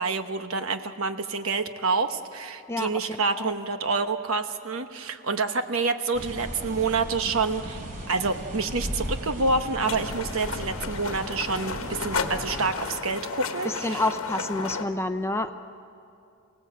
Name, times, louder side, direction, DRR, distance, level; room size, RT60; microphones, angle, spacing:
voice 1, 0.0-14.0, right 4 dB, 65° right, 8 dB, 1.1 m, -28 dB
voice 2, 2.7-3.5 13.6-15.5, left 2 dB, 10° left, 7 dB, 0.7 m, -29 dB
sound 1, 6.1-12.7, equal, 40° right, 3.8 m, -36 dB
sound 2, 9.8-14.9, left 4 dB, 65° left, 1.2 m, -33 dB
29.5 x 18.0 x 7.9 m, 2.5 s
head